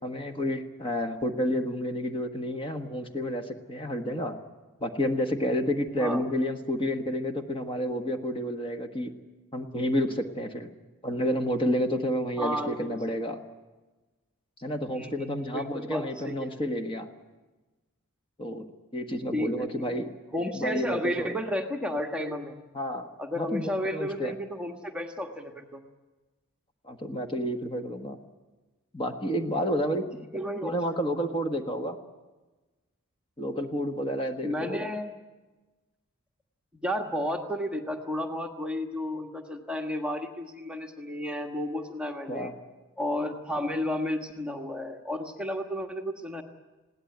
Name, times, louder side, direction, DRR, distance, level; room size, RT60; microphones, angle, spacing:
voice 1, 0.0-4.4 4.8-9.1 9.5-10.7 11.0-13.4 14.6-17.1 18.4-18.7 18.9-20.1 20.5-21.4 22.7-24.3 26.8-28.2 28.9-30.0 30.6-32.0 33.4-34.9 42.3-42.5, equal, 25° left, 6 dB, 1.5 m, -30 dB
voice 2, 12.4-13.0 14.9-16.4 19.3-20.0 20.3-22.6 23.2-25.8 30.1-30.8 34.4-35.1 36.7-42.5 43.0-46.4, left 1 dB, 5° right, 3 dB, 1.4 m, -32 dB
21.0 x 17.0 x 9.4 m, 1.2 s
head